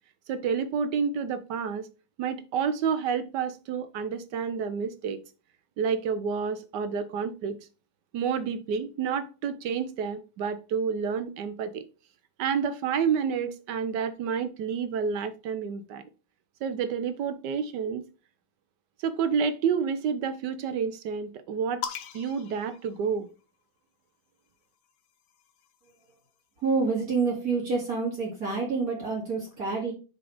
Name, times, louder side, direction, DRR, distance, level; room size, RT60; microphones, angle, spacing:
voice 1, 0.3-1.9 2.2-5.2 5.8-7.6 8.1-11.8 12.4-16.0 16.6-18.0 19.0-21.8 22.1-23.3, right 6 dB, 70° right, 1.2 m, -29 dB
sound 1, 21.8-23.6 24.7-26.4, left 8 dB, 85° left, 1.6 m, -41 dB
voice 2, 26.6-29.9, right 4 dB, 45° right, 2.8 m, -27 dB
6.9 x 4.2 x 4.8 m
omnidirectional pair, 2.1 m